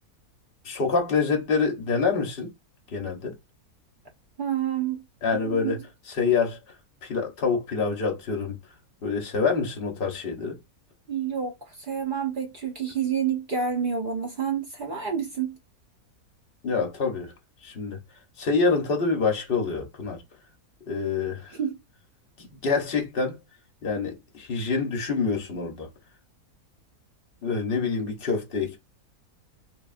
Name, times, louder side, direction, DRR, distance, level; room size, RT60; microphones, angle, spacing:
voice 1, 0.6-2.5 2.9-3.4 5.2-5.8 6.1-6.7 7.0-8.6 9.0-10.6 16.6-17.3 17.6-18.0 18.4-20.2 20.9-21.6 22.4-23.4 23.8-25.9 27.4-28.8, left 4 dB, 45° left, 0.8 m, -26 dB
voice 2, 4.4-5.0 5.3-5.8 11.1-15.6 21.6-21.8, right 7 dB, 55° right, 0.5 m, -28 dB
3.1 x 2.3 x 2.4 m
omnidirectional pair, 1.6 m